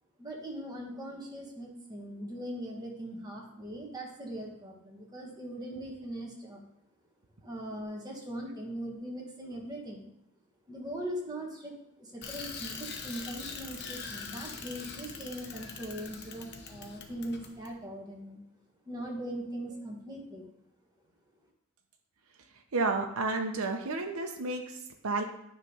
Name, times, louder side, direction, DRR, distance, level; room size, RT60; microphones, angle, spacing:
voice 1, 0.2-6.7 7.4-10.1 10.7-11.7 12.0-18.4 18.8-20.5, right 1 dB, 20° right, -1 dB, 1.5 m, -40 dB
Bicycle, 12.2-17.7, left 5 dB, 50° left, 0.9 m, -43 dB
voice 2, 22.7-25.2, right 3 dB, 90° right, 3 dB, 0.8 m, -31 dB
9.6 x 3.3 x 5.6 m, 0.81 s
head